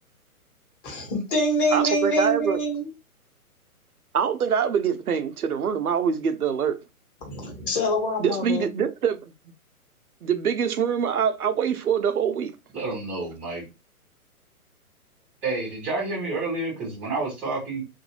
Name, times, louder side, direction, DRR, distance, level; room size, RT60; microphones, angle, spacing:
voice 1, 0.8-2.9 7.2-8.7, equal, 35° left, 1.3 m, -25 dB
voice 2, 1.7-2.6 4.1-6.8 8.2-9.2 10.2-12.5, right 7 dB, 75° right, 0.7 m, -24 dB
voice 3, 12.7-13.6 15.4-17.8, right 3 dB, 5° right, 0.6 m, -29 dB
2.6 x 2.6 x 2.9 m
figure-of-eight pair, 125°, 45 cm